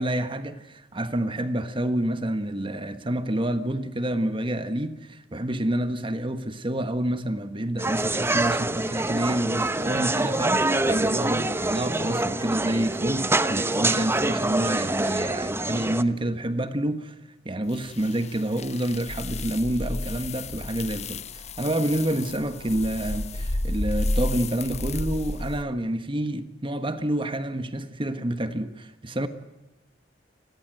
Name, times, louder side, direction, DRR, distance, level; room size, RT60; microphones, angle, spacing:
voice 1, 0.0-17.1 17.4-29.3, right 1 dB, 30° right, 1.4 m, -28 dB
sound 1, 7.8-16.0, right 2 dB, 15° right, 1.1 m, -25 dB
sound 2, 17.7-25.6, left 2 dB, 40° left, 1.0 m, -31 dB
30.0 x 21.5 x 7.9 m
head